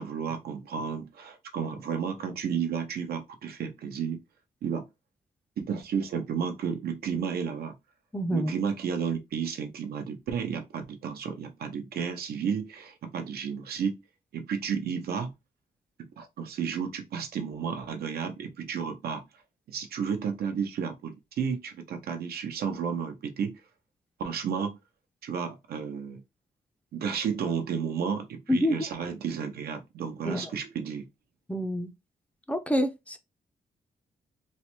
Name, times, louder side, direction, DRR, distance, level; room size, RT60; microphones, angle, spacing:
voice 1, 0.0-4.2 4.6-4.8 5.6-7.7 8.3-14.0 14.3-15.3 16.0-19.2 19.7-23.6 24.2-24.8 25.2-26.2 26.9-31.1, right 7 dB, 85° right, 0.6 m, -32 dB
voice 2, 8.1-8.5 28.5-28.8 30.3-30.5 31.5-31.9 32.5-33.2, equal, 10° left, 0.4 m, -27 dB
3.2 x 2.1 x 2.9 m
cardioid pair, 105°, 16 cm